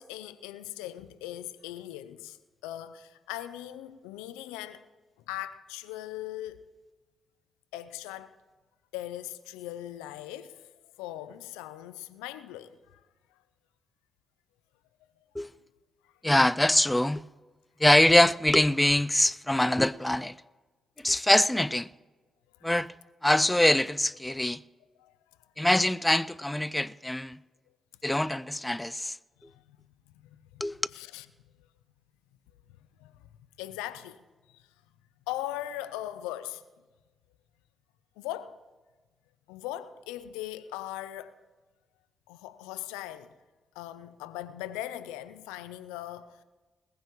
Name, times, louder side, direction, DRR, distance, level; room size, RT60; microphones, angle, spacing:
voice 1, 0.0-2.4 2.6-4.8 5.3-6.6 7.7-8.3 8.9-10.6 11.0-13.0 22.6-22.7 25.0-25.1 30.2-30.6 30.9-31.3 33.0-33.1 33.6-34.2 35.3-36.6 38.2-38.5 39.5-41.3 42.3-43.3 43.8-46.4, left 13 dB, 85° left, 0.5 m, -39 dB
voice 2, 16.2-17.3 17.8-20.4 21.0-21.9 22.6-22.9 23.2-24.6 25.6-27.4 28.0-29.2 30.6-30.8, left 1 dB, 10° left, 0.4 m, -24 dB
20.0 x 15.0 x 3.1 m
hypercardioid pair, 40°, 0 cm